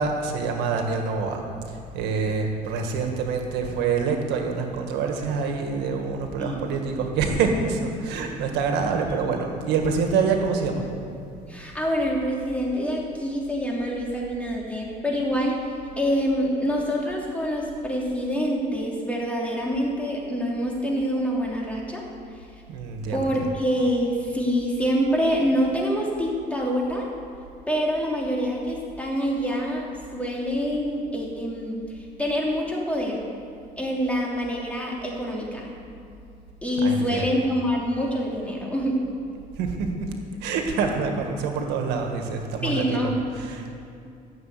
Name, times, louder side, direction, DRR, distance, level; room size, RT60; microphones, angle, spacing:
voice 1, 0.0-10.8 22.7-23.5 36.8-37.3 39.6-39.9 40.4-43.7, right 5 dB, 90° right, 3 dB, 1.7 m, -26 dB
voice 2, 11.5-15.6 16.0-22.0 23.1-27.1 27.7-29.8 30.1-33.2 33.8-35.7 36.6-38.9 42.6-43.2, equal, 10° left, -3 dB, 3.1 m, -26 dB
14.5 x 7.0 x 8.4 m, 2.5 s
cardioid pair, 110°, 17 cm